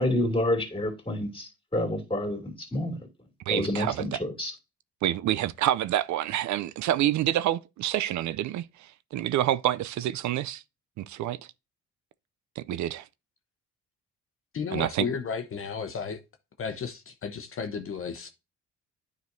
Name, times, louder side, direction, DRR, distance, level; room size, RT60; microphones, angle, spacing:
voice 1, 0.0-2.9 3.5-4.5, left 1 dB, 15° left, 2.8 m, -28 dB
voice 2, 3.5-4.2 5.0-10.6 11.0-11.4 12.6-13.1 14.7-15.1, right 12 dB, 70° right, 0.5 m, -27 dB
voice 3, 14.5-16.2 16.6-18.3, left 6 dB, 45° left, 0.9 m, -33 dB
9.3 x 5.1 x 2.6 m
cardioid pair, 90°, 30 cm